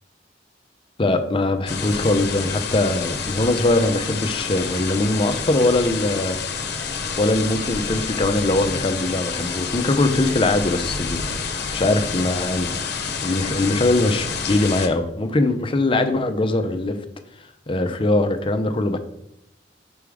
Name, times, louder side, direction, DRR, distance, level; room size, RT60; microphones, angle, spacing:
voice 1, 1.0-6.4 7.2-11.2 11.7-12.7 13.2-16.9 17.7-19.0, left 2 dB, 30° left, 7 dB, 0.6 m, -21 dB
sound 1, 1.7-14.9, left 5 dB, 60° left, 0.8 m, -28 dB
6.1 x 3.5 x 4.8 m, 0.78 s
head